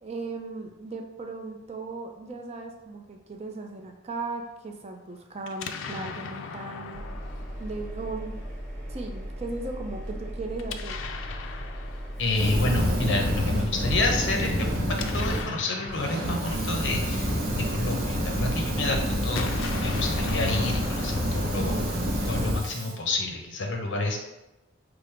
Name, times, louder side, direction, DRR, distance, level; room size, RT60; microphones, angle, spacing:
voice 1, 0.0-7.0 7.6-8.3 8.9-11.0, right 3 dB, 35° right, 3 dB, 0.4 m, -37 dB
Explosion, 5.4-8.5 10.5-12.8 14.7-18.1 19.2-22.5, left 6 dB, 85° left, 0.3 m, -39 dB
Engine, 6.9-14.2, equal, 5° left, 0.9 m, -37 dB
voice 2, 12.2-14.7 15.1-17.4 17.7-19.5 19.8-24.2, left 2 dB, 70° left, 2 dB, 0.7 m, -29 dB
Fire, 12.3-15.4 15.9-22.9, equal, 55° right, 1.0 m, -28 dB
4.9 x 2.0 x 4.4 m, 0.99 s
head